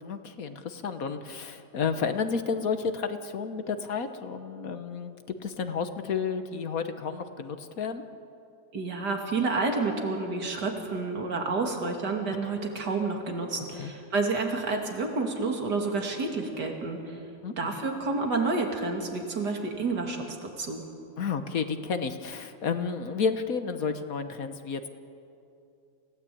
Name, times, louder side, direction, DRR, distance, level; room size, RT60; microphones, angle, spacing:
voice 1, 0.0-8.0 13.7-13.9 17.4-17.7 21.2-24.9, left 5 dB, 60° left, 9 dB, 1.5 m, -31 dB
voice 2, 8.7-17.2 17.6-20.8, right 3 dB, 75° right, 2 dB, 3.1 m, -29 dB
27.5 x 16.5 x 8.6 m, 2.6 s
omnidirectional pair, 1.8 m